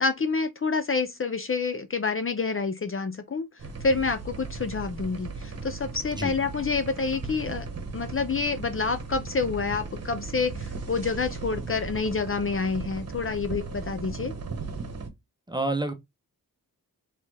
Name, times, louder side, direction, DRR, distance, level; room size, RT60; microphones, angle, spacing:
voice 1, 0.0-3.5 3.8-7.7 7.9-14.3, left 4 dB, 35° left, 0.6 m, -28 dB
sound 1, 3.6-15.1, right 4 dB, 45° right, 1.2 m, -37 dB
voice 2, 15.5-15.9, right 2 dB, 10° right, 0.9 m, -28 dB
4.3 x 3.5 x 3.3 m
wide cardioid pair, 90°, 35 cm